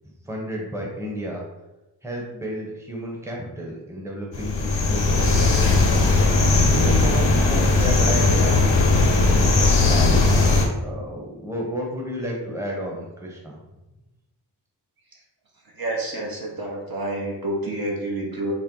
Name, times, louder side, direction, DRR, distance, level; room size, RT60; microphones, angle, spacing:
voice 1, 0.2-1.5 2.0-5.6 6.7-10.2 10.8-13.6, equal, 5° right, -2 dB, 0.9 m, -32 dB
sound 1, 4.3-10.7, left 3 dB, 85° left, 0.8 m, -18 dB
voice 2, 15.8-18.5, right 1 dB, 55° right, -2 dB, 1.0 m, -28 dB
4.2 x 2.1 x 3.8 m, 0.98 s
wide cardioid pair, 80°, 43 cm